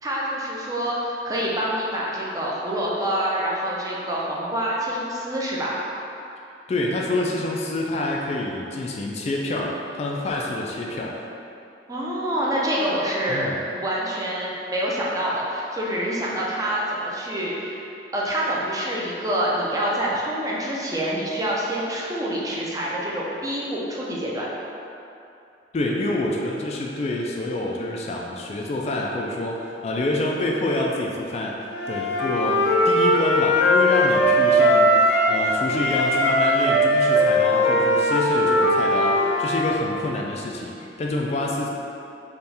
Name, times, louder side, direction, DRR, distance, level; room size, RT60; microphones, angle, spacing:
voice 1, 0.0-5.8 11.9-17.8 18.1-24.5, right 1 dB, 20° right, -5 dB, 0.5 m, -26 dB
voice 2, 6.7-11.2 13.3-13.6 25.7-41.7, left 1 dB, 40° left, -1 dB, 0.3 m, -27 dB
Wind instrument woodwind instrument, 31.7-35.4 35.7-39.6, equal, 80° left, 1.1 m, -19 dB
4.3 x 2.4 x 3.4 m, 2.7 s
head